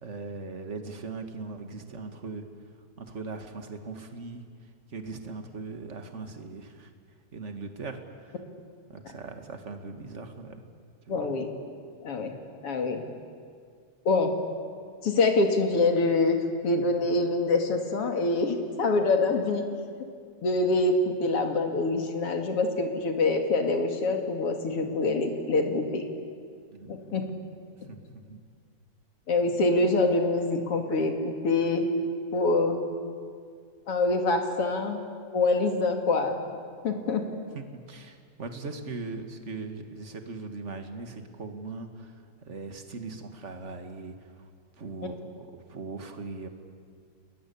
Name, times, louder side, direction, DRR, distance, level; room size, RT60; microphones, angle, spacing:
voice 1, 0.0-2.4 3.0-4.4 4.9-6.9 7.3-8.3 8.9-10.6 11.1-11.3 26.7-27.3 27.9-28.4 37.5-42.1 42.5-44.1 44.8-46.5, right 3 dB, 30° right, 6 dB, 1.6 m, -39 dB
voice 2, 11.1-11.5 12.0-12.3 12.6-13.0 14.0-14.3 15.0-19.6 20.4-26.1 26.9-27.2 27.8-27.9 29.3-31.9 32.3-32.8 33.9-35.0 35.3-36.5 36.8-37.2, left 3 dB, 50° left, 4 dB, 3.0 m, -25 dB
29.5 x 21.0 x 8.6 m, 2.1 s
omnidirectional pair, 3.4 m